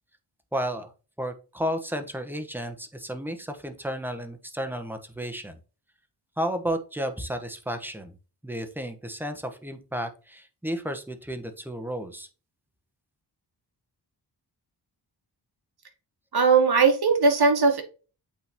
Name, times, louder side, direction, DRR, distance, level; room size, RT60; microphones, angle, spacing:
voice 1, 0.5-0.9 1.2-5.6 6.4-8.2 8.4-12.3, equal, 5° right, 7 dB, 1.2 m, -32 dB
voice 2, 16.3-17.8, right 4 dB, 60° right, 4 dB, 1.9 m, -19 dB
8.6 x 3.9 x 3.0 m, 0.34 s
wide cardioid pair, 85°, 42 cm